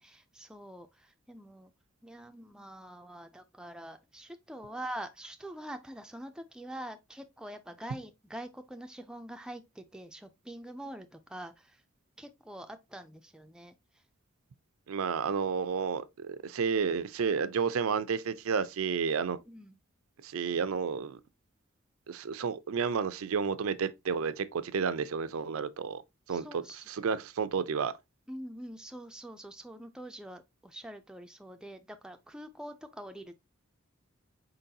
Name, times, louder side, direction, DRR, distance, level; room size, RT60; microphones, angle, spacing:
voice 1, 0.0-1.7 2.0-11.8 12.2-13.7 19.5-19.8 26.3-26.8 28.3-33.3, right 1 dB, 5° right, 0.3 m, -45 dB
voice 2, 14.9-19.4 20.2-21.2 22.1-26.0 26.3-27.9, right 6 dB, 80° right, 0.4 m, -31 dB
4.5 x 3.9 x 2.7 m
head